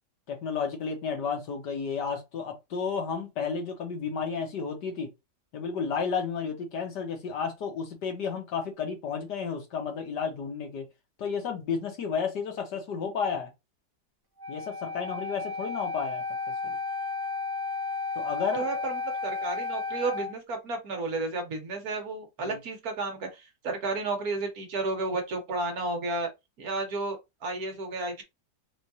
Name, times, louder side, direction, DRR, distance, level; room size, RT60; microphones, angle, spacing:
voice 1, 0.3-5.1 5.5-10.9 11.2-13.5 14.5-16.2 16.6-16.8 18.2-18.7 22.4-22.6, left 6 dB, 80° left, 1.9 m, -32 dB
Wind instrument woodwind instrument, 14.4-20.3, left 4 dB, 20° right, 0.8 m, -33 dB
voice 2, 18.5-26.3 26.6-28.2, right 3 dB, 65° right, 1.6 m, -32 dB
4.3 x 3.4 x 2.8 m
omnidirectional pair, 1.8 m